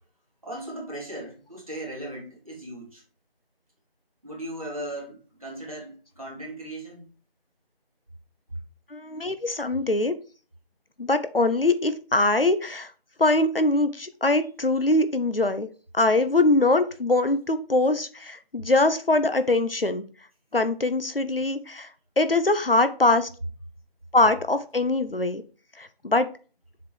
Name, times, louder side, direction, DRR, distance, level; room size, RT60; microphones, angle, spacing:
voice 1, 0.4-3.0 4.2-7.1, right 1 dB, 35° right, 2.8 m, -37 dB
voice 2, 8.9-10.1 11.0-12.9 13.2-15.7 15.9-20.0 20.5-21.9 22.2-23.3 24.1-25.4 25.8-26.3, left 2 dB, 65° left, 1.0 m, -22 dB
7.1 x 4.9 x 4.8 m
figure-of-eight pair, 175°, 30 cm